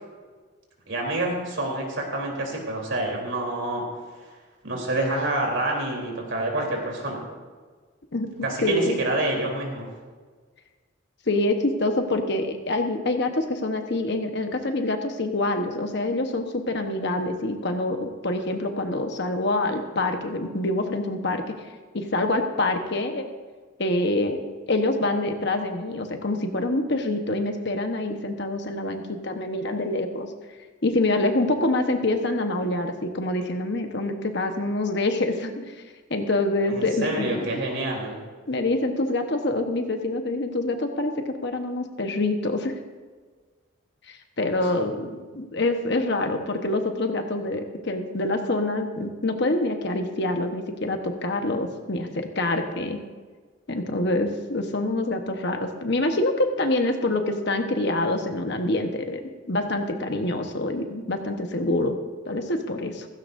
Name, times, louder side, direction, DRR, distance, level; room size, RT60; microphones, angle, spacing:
voice 1, 0.9-3.8 4.6-7.2 8.4-9.9 36.7-38.2, right 2 dB, 65° right, -1 dB, 3.5 m, -27 dB
voice 2, 8.6-9.0 11.3-21.6 21.9-23.2 23.8-30.3 30.8-35.7 36.1-37.6 38.5-42.7 44.1-53.0 53.7-59.2 59.5-62.0 62.2-63.1, left 2 dB, 55° left, 5 dB, 1.2 m, -26 dB
16.0 x 16.0 x 2.7 m, 1.5 s
head